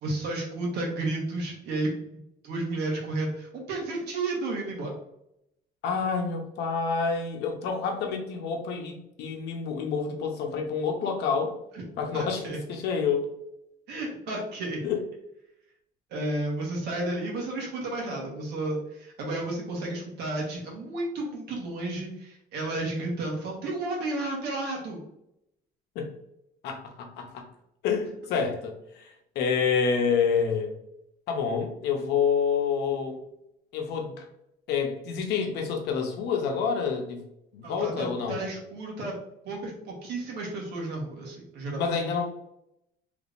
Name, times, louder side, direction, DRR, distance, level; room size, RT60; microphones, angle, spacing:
voice 1, 0.0-1.9 2.4-5.0 11.7-11.8 12.1-12.6 13.9-14.8 16.1-25.0 37.6-39.2 39.4-42.2, right 2 dB, 80° right, -1 dB, 1.4 m, -32 dB
voice 2, 5.8-11.6 12.0-13.3 14.8-15.0 25.9-26.1 26.6-27.5 27.8-30.7 31.3-33.2 33.7-34.3 34.7-37.2 37.5-38.5 41.8-42.2, left 6 dB, 80° left, 3 dB, 0.8 m, -28 dB
3.4 x 3.3 x 2.6 m, 0.81 s
cardioid pair, 110°, 17 cm